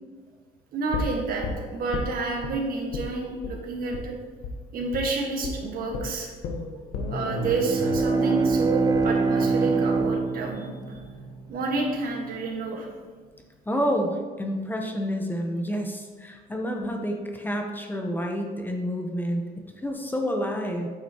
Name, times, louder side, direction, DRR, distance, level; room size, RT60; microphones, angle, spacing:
voice 1, 0.7-4.1 4.7-6.3 7.1-11.0 11.5-12.9, right 3 dB, 60° right, 0 dB, 1.5 m, -29 dB
sound 1, 0.9-2.5 2.9-3.1 3.4-3.6 3.9-4.1 4.4-4.6 4.9-5.1 5.4-5.6 5.9-11.9 12.2-12.3, left 3 dB, 90° left, 1.0 m, -34 dB
Bowed string instrument, 7.1-11.7, right 4 dB, 25° right, 0.5 m, -25 dB
voice 2, 13.7-20.9, equal, 10° left, 2 dB, 0.8 m, -29 dB
8.7 x 5.8 x 2.9 m, 1.4 s
cardioid pair, 110°, 17 cm